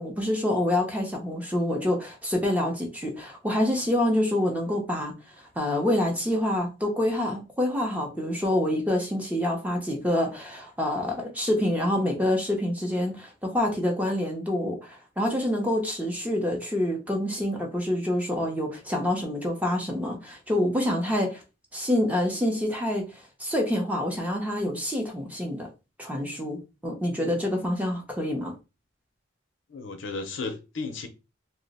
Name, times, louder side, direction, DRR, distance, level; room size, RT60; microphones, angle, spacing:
voice 1, 0.0-5.1 5.6-21.4 21.7-25.7 26.0-28.5, left 1 dB, 5° right, 0.6 m, -27 dB
voice 2, 29.7-31.1, left 3 dB, 65° left, 0.6 m, -34 dB
2.8 x 2.1 x 4.0 m
head